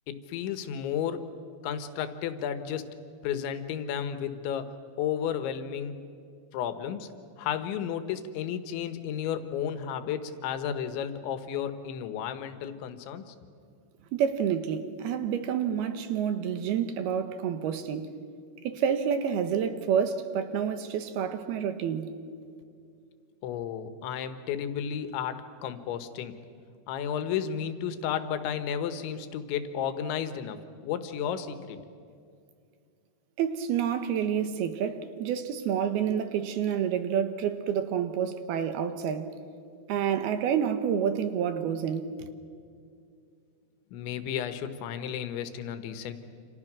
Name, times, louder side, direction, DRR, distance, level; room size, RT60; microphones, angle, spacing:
voice 1, 0.1-1.3 1.6-3.0 3.2-6.0 6.5-7.1 7.4-13.4 23.4-26.4 26.9-31.8 43.9-46.1, left 8 dB, 85° left, 3.6 m, -33 dB
voice 2, 14.1-18.1 18.6-22.1 33.4-39.3 39.9-42.3, right 8 dB, 70° right, 2.7 m, -28 dB
28.0 x 28.0 x 6.1 m
omnidirectional pair, 5.2 m